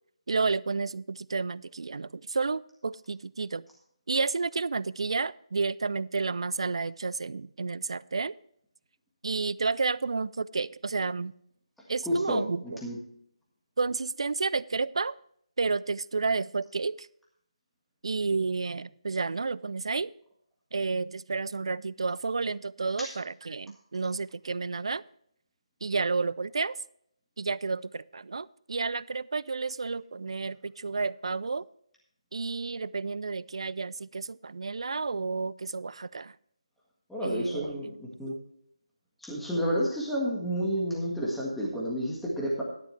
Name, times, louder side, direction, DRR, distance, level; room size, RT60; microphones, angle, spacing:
voice 1, 0.3-3.6 4.1-8.4 9.2-11.3 11.9-12.8 13.8-15.2 15.6-17.1 18.0-20.1 20.7-25.0 25.8-26.8 27.4-31.6 32.3-36.3 37.2-37.7 38.3-38.4, right 4 dB, 55° right, 20 dB, 0.4 m, -31 dB
voice 2, 12.0-13.0 23.0-23.1 37.1-38.4 39.2-42.6, equal, ahead, -5 dB, 1.7 m, -30 dB
13.0 x 10.5 x 3.3 m, 0.69 s
figure-of-eight pair, 155°, 3 cm